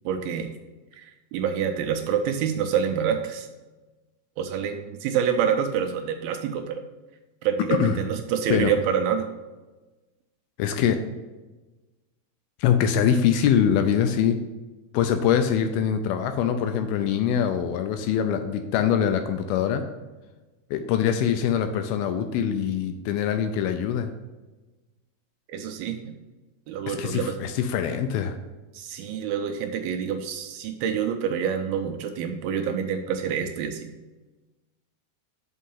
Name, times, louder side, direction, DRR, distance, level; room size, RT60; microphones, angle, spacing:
voice 1, 0.1-0.5 0.9-3.5 4.4-6.8 7.4-9.3 25.5-26.2 26.7-27.4 28.7-33.9, right 7 dB, 80° right, 4 dB, 2.3 m, -27 dB
voice 2, 10.6-11.0 12.6-14.4 14.9-19.8 20.7-24.1 26.9-28.4, left 8 dB, 80° left, 7 dB, 2.3 m, -23 dB
6.2 x 5.5 x 5.5 m, 1.2 s
omnidirectional pair, 4.6 m